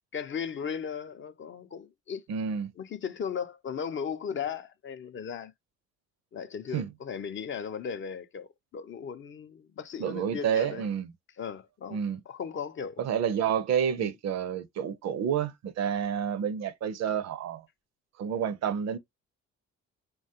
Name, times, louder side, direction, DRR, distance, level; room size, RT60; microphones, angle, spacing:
voice 1, 0.1-2.2 2.8-5.5 6.3-10.9 11.4-12.0 12.3-13.0 14.0-14.1, left 7 dB, 40° left, 0.4 m, -37 dB
voice 2, 2.3-2.7 6.7-6.9 10.0-11.1 11.9-12.2 13.0-17.7 18.2-19.0, right 8 dB, 60° right, 0.5 m, -29 dB
3.1 x 2.2 x 2.7 m
cardioid pair, 90°, 30 cm